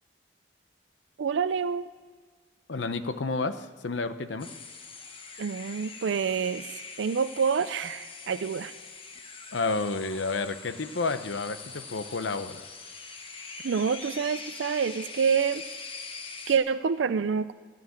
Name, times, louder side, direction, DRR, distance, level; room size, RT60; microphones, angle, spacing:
voice 1, 1.2-1.8 5.4-6.7 7.0-8.7 13.6-15.6 16.5-17.5, right 6 dB, 85° right, 13 dB, 0.4 m, -27 dB
voice 2, 2.7-4.5 9.5-12.6, left 3 dB, 85° left, 10 dB, 0.8 m, -30 dB
sound 1, 4.4-16.6, left 4 dB, 30° left, 1.0 m, -43 dB
14.5 x 6.8 x 9.5 m, 1.5 s
head